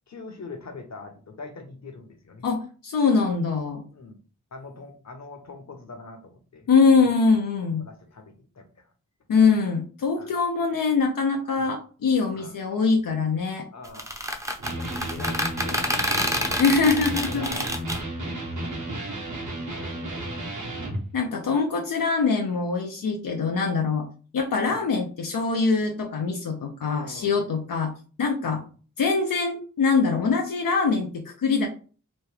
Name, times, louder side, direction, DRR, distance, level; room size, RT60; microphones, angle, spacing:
voice 1, 0.1-2.4 3.9-4.2 4.5-6.7 7.0-7.2 7.8-8.9 10.2-10.3 11.6-11.7 12.3-12.5 13.7-14.1 14.5-16.6 17.2-18.0 18.4-20.8 24.7-24.9 26.8-27.4 28.4-28.7, left 3 dB, 55° left, 5 dB, 0.8 m, -43 dB
voice 2, 2.4-3.8 6.7-7.8 9.3-13.7 16.6-17.6 21.1-24.1 24.3-27.9 28.2-28.6 29.0-31.7, left 4 dB, 80° left, 2 dB, 0.5 m, -23 dB
sound 1, 13.8-18.0, equal, 10° right, 0.6 m, -28 dB
Electric guitar, 14.6-21.0, right 1 dB, 60° right, 1.1 m, -33 dB
3.1 x 2.2 x 3.2 m, 0.38 s
cardioid pair, 40°, 33 cm